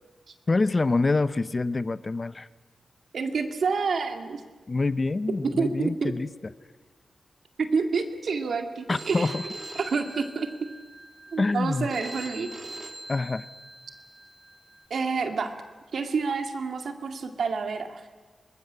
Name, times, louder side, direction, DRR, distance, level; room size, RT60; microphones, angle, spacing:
voice 1, 0.5-2.5 4.7-6.3 8.9-9.4 11.4-11.9 13.1-13.5, left 3 dB, 35° left, 16 dB, 0.7 m, -26 dB
voice 2, 3.1-4.4 5.4-6.1 7.6-9.4 9.8-10.5 11.3-12.5 14.9-15.5 15.9-18.0, right 4 dB, 75° right, 7 dB, 2.1 m, -28 dB
Telephone, 8.9-14.9, right 2 dB, 40° right, 2.5 m, -42 dB
24.0 x 20.5 x 9.8 m, 1.4 s
wide cardioid pair, 90°, 0 cm